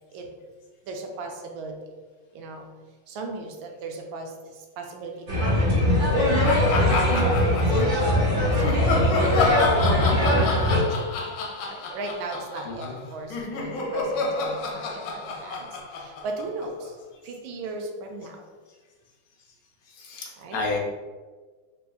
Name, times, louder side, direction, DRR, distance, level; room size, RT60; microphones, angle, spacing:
voice 1, 0.8-1.9 2.3-2.7 3.1-8.9 10.0-11.1 11.7-17.0 17.2-18.5 20.4-20.6, right 3 dB, 80° right, 3 dB, 1.3 m, -37 dB
sound 1, 5.3-10.8, left 1 dB, 55° right, 1.5 m, -21 dB
sound 2, 6.4-8.1 8.6-16.9, left 3 dB, 80° left, 1.4 m, -29 dB
voice 2, 12.6-13.0 19.9-20.8, left 3 dB, 65° left, -2 dB, 0.9 m, -32 dB
3.8 x 3.4 x 2.3 m, 1.4 s
omnidirectional pair, 2.2 m